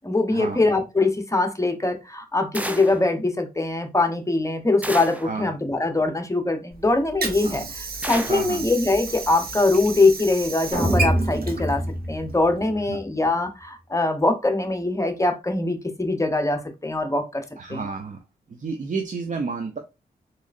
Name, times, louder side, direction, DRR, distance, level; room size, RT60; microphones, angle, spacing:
voice 1, 0.0-11.8 12.1-17.4 17.7-17.9, left 2 dB, 20° left, 7 dB, 0.9 m, -22 dB
sound 1, 2.5-3.1 4.8-5.3 8.0-8.5, right 1 dB, 10° right, 0.6 m, -32 dB
Water / Sink (filling or washing), 6.7-12.7, right 3 dB, 65° right, 0.9 m, -33 dB
voice 2, 8.3-8.7 12.9-13.0 17.6-18.2 18.5-19.8, right 4 dB, 50° right, 4 dB, 0.6 m, -30 dB
sound 2, 10.7-13.0, equal, 30° right, 2.0 m, -25 dB
3.6 x 3.1 x 2.5 m, 0.25 s
cardioid pair, 50°, 17 cm